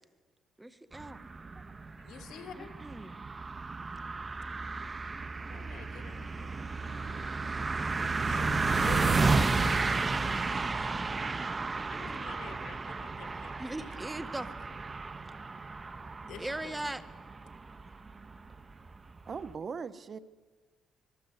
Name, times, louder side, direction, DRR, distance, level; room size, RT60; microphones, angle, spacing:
voice 1, 0.6-1.2 2.6-3.2 13.6-14.5 16.4-17.0, right 1 dB, 10° right, 12 dB, 1.6 m, -39 dB
sound 1, 0.9-19.5, right 3 dB, 30° right, 1.4 m, -33 dB
voice 2, 2.0-2.7 5.5-7.4 7.8-10.9 11.7-14.0 16.2-16.8, left 8 dB, 75° left, 10 dB, 1.9 m, -49 dB
voice 3, 19.3-20.2, right 5 dB, 45° right, 15 dB, 1.1 m, -39 dB
25.5 x 21.5 x 8.3 m, 1.4 s
cardioid pair, 90°, 0 cm